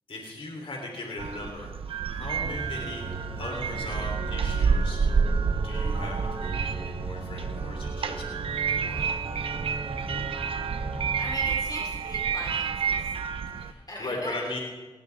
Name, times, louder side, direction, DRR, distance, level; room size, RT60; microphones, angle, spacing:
voice 1, 0.1-1.7 2.1-3.1 3.4-5.0 5.6-8.2 8.7-9.1 13.5-14.6, left 2 dB, 75° left, 0 dB, 3.5 m, -38 dB
sound 1, 1.2-13.7, right 6 dB, 90° right, 0.8 m, -29 dB
Organ, 2.4-11.6, right 2 dB, 70° right, 1.8 m, -37 dB
voice 2, 11.2-13.0 13.9-14.4, equal, 45° left, -2 dB, 4.1 m, -39 dB
19.0 x 18.0 x 3.6 m, 1.2 s
cardioid pair, 45°, 9 cm